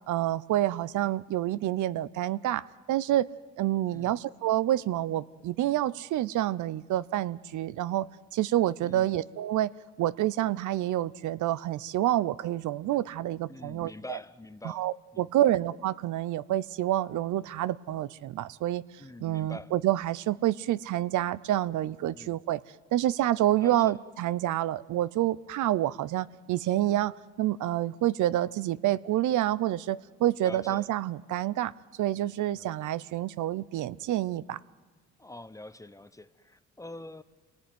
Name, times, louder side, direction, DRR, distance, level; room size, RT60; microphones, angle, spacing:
voice 1, 0.1-3.3 3.6-9.7 10.0-14.2 14.6-18.8 19.2-22.6 22.9-31.7 32.0-34.6, right 13 dB, 75° right, 0.7 m, -28 dB
voice 2, 8.8-9.1 13.5-14.9 15.1-15.5 19.0-19.7 22.1-22.4 23.6-24.0 30.4-30.9 32.5-32.7 35.2-37.2, left 2 dB, 10° left, 1.0 m, -45 dB
27.0 x 19.0 x 9.4 m
cardioid pair, 90°, 30 cm